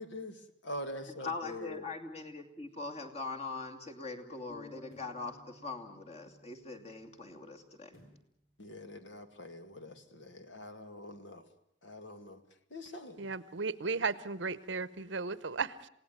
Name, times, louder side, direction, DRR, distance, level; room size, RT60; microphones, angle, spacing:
voice 1, 0.0-1.9 8.6-11.4 11.8-12.4 12.7-13.3, left 1 dB, 60° left, 9 dB, 2.1 m, -44 dB
voice 2, 1.2-8.0, left 3 dB, 30° left, 3 dB, 2.6 m, -42 dB
sound 1, 4.5-8.3, left 3 dB, 5° right, 1.4 m, -58 dB
sound 2, 4.9-5.3 7.9-8.4 8.8-8.9, equal, 85° left, 4.3 m, -61 dB
voice 3, 13.2-15.9, right 4 dB, 60° right, 17 dB, 0.9 m, -35 dB
27.5 x 17.5 x 9.2 m, 0.73 s
head